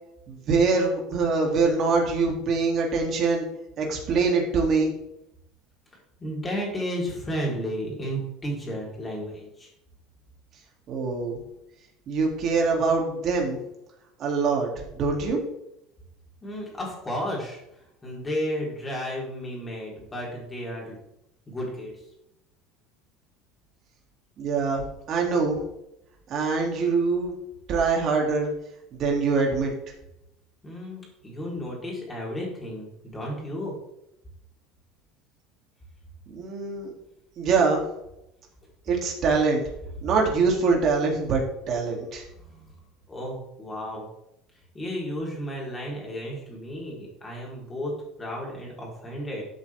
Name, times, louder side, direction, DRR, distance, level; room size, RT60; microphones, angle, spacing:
voice 1, 0.3-3.4 3.8-4.9 10.9-11.4 12.1-13.6 14.2-14.7 15.0-15.4 24.4-25.6 26.3-27.3 27.7-28.5 28.9-29.7 36.3-36.9 37.4-37.8 38.9-39.6 40.0-41.4 41.7-42.2, right 4 dB, 40° right, 0 dB, 3.2 m, -24 dB
voice 2, 6.2-9.7 16.4-21.0 21.5-21.9 30.6-33.7 42.4-42.7 43.1-44.1 44.7-49.4, equal, 15° left, -3 dB, 4.4 m, -33 dB
12.5 x 8.1 x 3.8 m, 0.83 s
cardioid pair, 155°, 0 cm